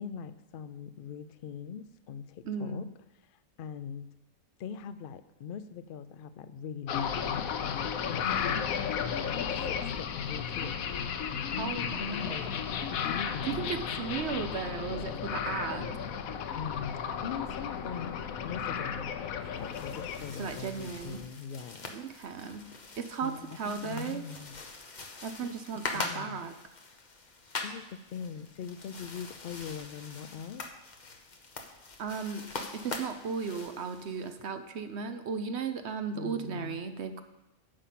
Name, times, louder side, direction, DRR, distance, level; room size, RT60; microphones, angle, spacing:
voice 1, 0.0-2.9 3.2-4.1 4.6-7.4 8.0-8.7 9.2-10.8 11.3-13.6 16.5-21.9 23.2-24.6 25.4-25.5 25.9-26.5 27.6-30.7 36.1-36.8, left 7 dB, 65° left, 12 dB, 0.5 m, -41 dB
voice 2, 2.5-2.9 11.6-12.4 13.5-15.9 20.4-21.2 21.9-22.7 23.0-24.2 25.2-26.5 32.0-37.2, right 6 dB, 60° right, 8 dB, 0.9 m, -36 dB
sound 1, 6.9-21.3, left 7 dB, 85° left, 1.1 m, -34 dB
sound 2, 19.5-34.3, left 3 dB, 35° left, 1.0 m, -43 dB
9.9 x 5.7 x 7.4 m, 1.0 s
omnidirectional pair, 1.4 m